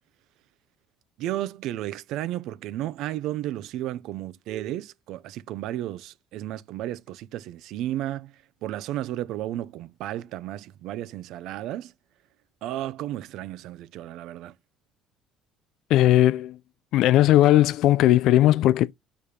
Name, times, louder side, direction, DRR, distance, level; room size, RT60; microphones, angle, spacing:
voice 1, 1.2-8.3 8.6-11.9 12.6-14.5, right 13 dB, 70° right, 0.6 m, -33 dB
voice 2, 15.9-16.6 16.9-18.9, left 14 dB, 70° left, 0.4 m, -18 dB
5.2 x 5.0 x 4.3 m
cardioid pair, 115°, 0 cm